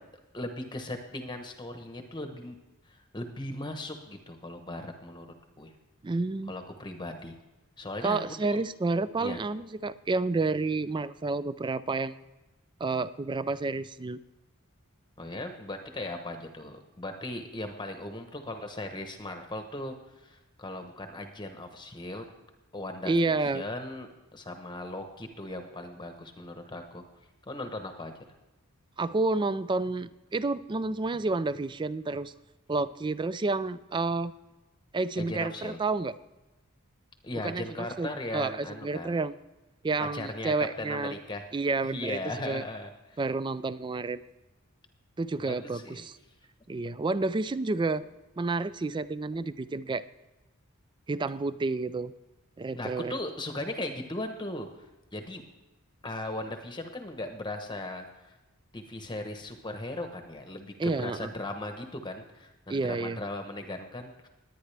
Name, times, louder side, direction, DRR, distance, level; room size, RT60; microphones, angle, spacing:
voice 1, 0.3-2.6 2.9-5.3 5.6-5.7 6.5-7.3 7.8-8.6 9.2-9.4 15.2-22.2 22.7-27.0 27.5-28.1 35.2-35.8 37.2-39.2 40.0-41.4 41.9-43.2 45.4-46.0 52.7-54.9 55.1-55.4 56.0-58.4 58.7-64.3, left 1 dB, 20° left, 5 dB, 1.0 m, -38 dB
voice 2, 6.0-6.5 8.0-12.2 12.8-14.2 23.0-23.6 29.0-32.3 32.7-34.3 34.9-36.1 37.4-39.3 39.8-41.2 41.5-42.6 43.2-44.2 45.2-46.2 46.7-48.0 48.4-50.1 51.1-52.1 52.6-53.2 60.8-61.3 62.7-63.2, right 3 dB, 20° right, 16 dB, 0.4 m, -30 dB
20.5 x 9.3 x 3.4 m, 1.0 s
head